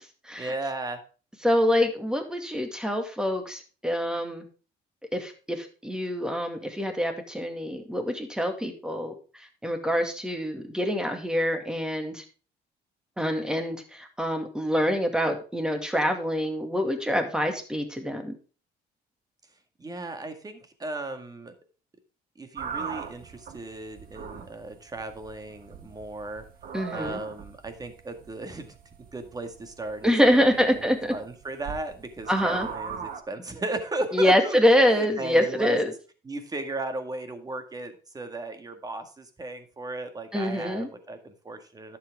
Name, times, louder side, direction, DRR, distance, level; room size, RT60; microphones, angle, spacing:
voice 1, 0.4-1.0 19.8-21.5 22.4-26.4 26.9-28.8 29.1-30.4 30.7-34.6 34.9-35.8 36.2-42.0, right 2 dB, 20° right, 8 dB, 1.9 m, -36 dB
voice 2, 1.4-4.4 5.1-12.2 13.2-18.3 26.7-27.2 30.0-31.1 32.3-32.7 34.1-35.9 40.3-40.9, equal, 5° right, 6 dB, 2.2 m, -25 dB
sound 1, 22.6-33.2, right 6 dB, 55° right, 1.6 m, -40 dB
11.5 x 7.8 x 3.6 m, 0.37 s
cardioid pair, 110°, 17 cm